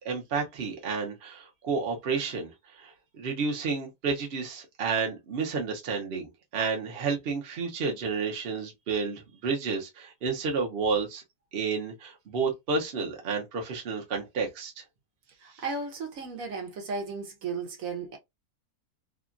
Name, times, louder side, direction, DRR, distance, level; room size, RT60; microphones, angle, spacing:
voice 1, 0.0-11.2 11.5-14.8 15.5-15.6, right 5 dB, 50° right, 0.9 m, -31 dB
voice 2, 15.4-18.2, right 4 dB, 65° right, 1.2 m, -35 dB
2.9 x 2.3 x 2.4 m
omnidirectional pair, 1.6 m